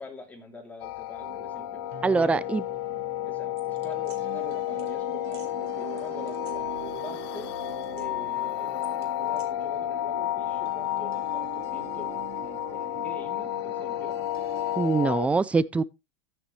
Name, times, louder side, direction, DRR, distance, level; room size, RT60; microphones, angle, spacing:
voice 1, 0.0-2.4 3.3-7.5 7.9-8.9 9.1-14.2, left 3 dB, 10° left, 3.1 m, -45 dB
sound 1, 0.8-15.3, left 16 dB, 65° left, 0.8 m, -31 dB
sound 2, 1.2-15.2, right 10 dB, 50° right, 1.6 m, -43 dB
voice 2, 2.0-2.6 14.8-15.8, right 4 dB, 10° right, 0.4 m, -23 dB
sound 3, 3.6-4.2 4.8-4.9 5.3-5.5 6.0-7.1 7.4-8.3 8.8-9.5, right 6 dB, 65° right, 3.0 m, -52 dB
14.0 x 6.3 x 3.2 m
supercardioid pair, 130°, 14 cm